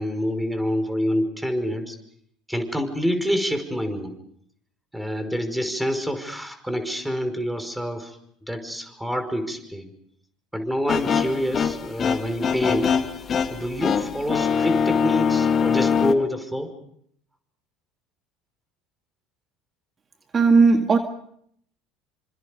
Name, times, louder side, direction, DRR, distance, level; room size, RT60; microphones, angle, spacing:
voice 1, 0.0-2.0 2.5-4.1 4.9-8.2 8.5-9.9 10.5-12.9 13.5-16.7, equal, 5° right, 8 dB, 5.4 m, -27 dB
sound 1, 10.9-16.1, left 6 dB, 40° left, 1.9 m, -23 dB
voice 2, 20.3-21.0, right 4 dB, 30° right, 6 dB, 1.9 m, -16 dB
28.0 x 26.0 x 5.4 m, 0.70 s
hypercardioid pair, 70°, 0 cm